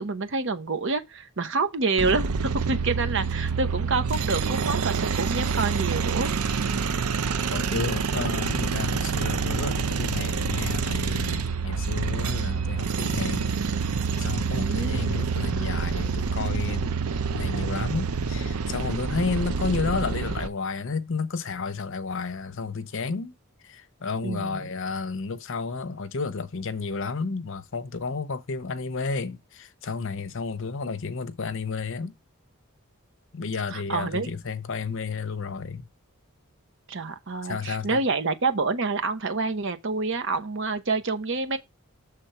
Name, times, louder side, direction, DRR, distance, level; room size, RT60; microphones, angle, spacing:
voice 1, 0.0-6.3 14.5-15.2 24.2-24.7 33.7-34.3 36.9-41.6, right 3 dB, 55° right, 0.9 m, -28 dB
sound 1, 2.0-20.5, right 5 dB, 90° right, 0.6 m, -27 dB
voice 2, 7.5-13.5 14.2-17.0 17.3-23.3 23.6-32.1 33.3-35.8 37.4-38.0, left 4 dB, 60° left, 0.7 m, -31 dB
6.9 x 3.5 x 5.6 m
head